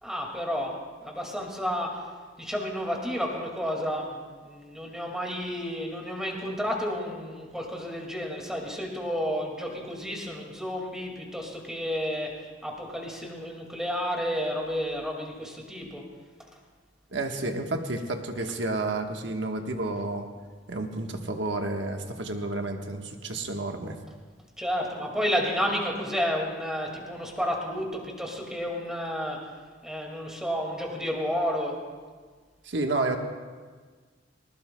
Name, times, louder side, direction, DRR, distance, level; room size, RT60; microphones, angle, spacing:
voice 1, 0.0-0.7 1.0-1.9 2.4-12.3 12.6-16.0 24.6-29.4 29.8-31.8, equal, 5° right, -1 dB, 2.1 m, -31 dB
voice 2, 17.1-20.3 20.7-23.9 32.6-33.2, right 2 dB, 70° right, 3 dB, 1.3 m, -30 dB
20.0 x 19.0 x 2.3 m, 1.5 s
head